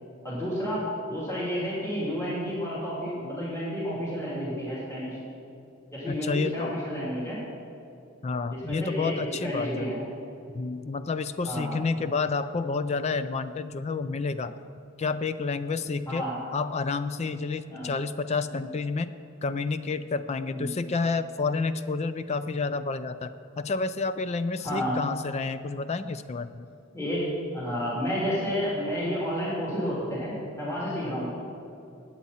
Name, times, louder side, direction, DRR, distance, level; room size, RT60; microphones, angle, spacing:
voice 1, 0.2-5.2 5.9-7.4 8.5-10.0 11.4-11.7 16.1-16.4 17.7-17.9 18.5-18.7 20.5-20.7 24.6-25.0 26.9-27.3 27.5-31.3, equal, 15° left, -8 dB, 3.0 m, -31 dB
voice 2, 6.1-6.7 8.2-9.9 10.5-14.5 15.0-16.2 16.5-19.1 19.4-23.3 23.6-26.7, left 4 dB, 30° left, 12 dB, 0.4 m, -29 dB
19.5 x 8.4 x 4.3 m, 2.6 s
head